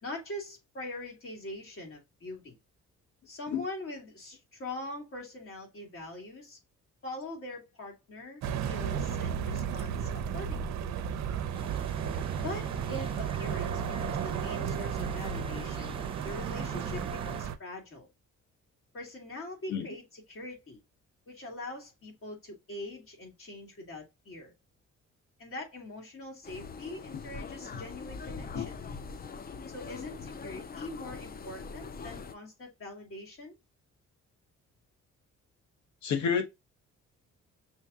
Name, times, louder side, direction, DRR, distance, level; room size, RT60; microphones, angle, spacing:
voice 1, 0.0-2.6 3.3-6.6 7.0-10.8 12.4-18.1 18.9-20.8 21.3-24.5 25.4-28.7 29.7-33.6, left 1 dB, 45° left, 2.3 m, -43 dB
sound 1, 8.4-17.6, right 7 dB, 65° right, 0.6 m, -34 dB
sound 2, 11.5-17.4, right 3 dB, 20° right, 0.7 m, -42 dB
sound 3, 26.4-32.3, left 4 dB, 30° left, 0.5 m, -42 dB
voice 2, 36.0-36.4, left 7 dB, 70° left, 1.0 m, -29 dB
6.1 x 2.7 x 2.3 m
cardioid pair, 90°, 30 cm